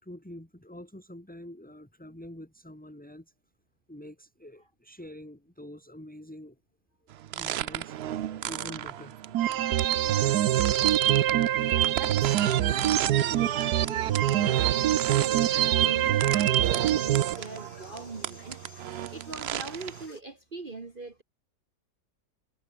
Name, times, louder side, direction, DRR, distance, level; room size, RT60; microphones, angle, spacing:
voice 1, 0.0-3.3 3.9-6.6 7.4-8.0 8.3-9.3 10.4-11.5, left 1 dB, 5° left, 3.3 m, -46 dB
sound 1, 7.1-20.1, right 11 dB, 65° right, 0.6 m, -37 dB
sound 2, 9.3-17.3, right 12 dB, 85° right, 1.4 m, -24 dB
sound 3, 11.4-20.2, left 3 dB, 65° left, 4.4 m, -54 dB
voice 2, 11.6-21.2, right 3 dB, 35° right, 1.8 m, -41 dB
omnidirectional pair, 1.7 m